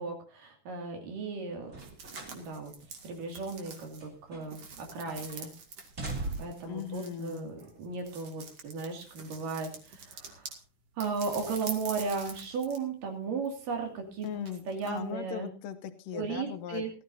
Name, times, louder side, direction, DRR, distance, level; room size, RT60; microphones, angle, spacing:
voice 1, 0.0-1.8 2.3-2.7 3.0-5.5 6.4-10.5 11.0-14.3 14.7-15.5 16.1-16.9, right 4 dB, 75° right, 2 dB, 4.1 m, -36 dB
sound 1, 1.6-2.4 2.8-2.9 3.7-4.7 5.0-5.4 5.8-6.7 7.6-7.7, right 2 dB, 25° right, 2.2 m, -40 dB
sound 2, 1.8-10.6 11.0-12.9 13.1-15.0, right 5 dB, 50° right, 3.1 m, -46 dB
voice 2, 6.7-7.5 14.2-16.8, left 9 dB, 80° left, 8 dB, 2.6 m, -38 dB
18.0 x 14.5 x 2.7 m, 0.36 s
omnidirectional pair, 3.8 m